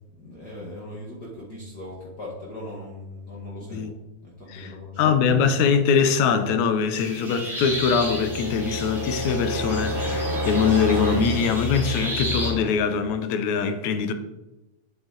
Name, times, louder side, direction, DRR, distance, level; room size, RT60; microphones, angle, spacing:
voice 1, 0.2-5.1, left 1 dB, 40° left, 1.9 m, -39 dB
voice 2, 4.5-14.1, left 6 dB, 80° left, 2.1 m, -23 dB
sound 1, 6.9-12.5, equal, ahead, 2.6 m, -34 dB
sound 2, 7.6-12.7, left 1 dB, 75° right, 2.7 m, -29 dB
9.4 x 7.7 x 4.0 m
omnidirectional pair, 3.4 m